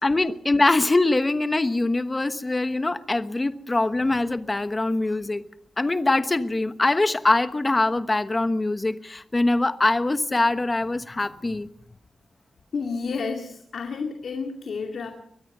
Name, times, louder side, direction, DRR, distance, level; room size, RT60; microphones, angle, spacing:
voice 1, 0.0-5.4 5.8-11.7, left 2 dB, 20° left, 11 dB, 1.1 m, -23 dB
voice 2, 12.7-15.1, left 4 dB, 70° left, 4 dB, 2.4 m, -30 dB
23.5 x 20.0 x 5.6 m, 0.66 s
wide cardioid pair, 140°, 0 cm